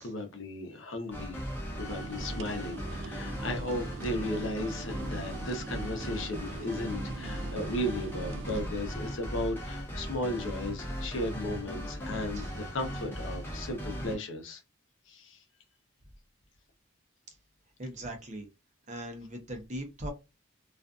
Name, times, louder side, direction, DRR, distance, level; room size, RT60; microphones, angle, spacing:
voice 1, 0.0-1.4 1.8-14.6 15.1-15.4, left 1 dB, 70° left, 0.7 m, -35 dB
sound 1, 1.1-14.2, equal, 10° left, 0.7 m, -38 dB
sound 2, 1.9-8.6, right 4 dB, 75° right, 0.3 m, -43 dB
voice 2, 17.8-18.5 18.9-20.1, right 1 dB, 35° right, 0.7 m, -39 dB
2.5 x 2.4 x 2.3 m
head